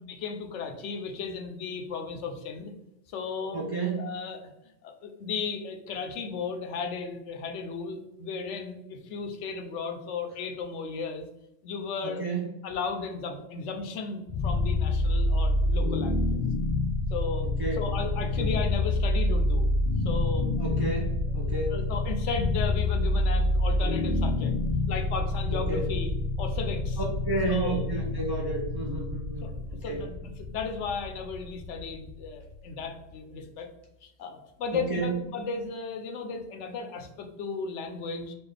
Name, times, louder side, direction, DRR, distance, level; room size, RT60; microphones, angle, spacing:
voice 1, 0.1-2.7 3.1-3.6 4.0-4.5 4.8-11.3 11.6-12.2 12.6-16.5 17.1-19.7 20.0-20.5 21.4-24.5 24.9-26.1 26.4-27.0 27.5-27.9 29.4-33.7 34.0-38.3, left 5 dB, 85° left, 5 dB, 0.9 m, -35 dB
voice 2, 3.5-4.1 12.0-12.5 17.6-17.8 18.2-18.5 20.6-21.8 25.7-25.8 27.2-29.4 29.9-30.0 34.7-35.1, right 3 dB, 45° right, -2 dB, 0.3 m, -31 dB
sound 1, 14.3-33.3, left 2 dB, 55° left, 0.7 m, -28 dB
4.3 x 2.3 x 3.3 m, 0.86 s
omnidirectional pair, 1.2 m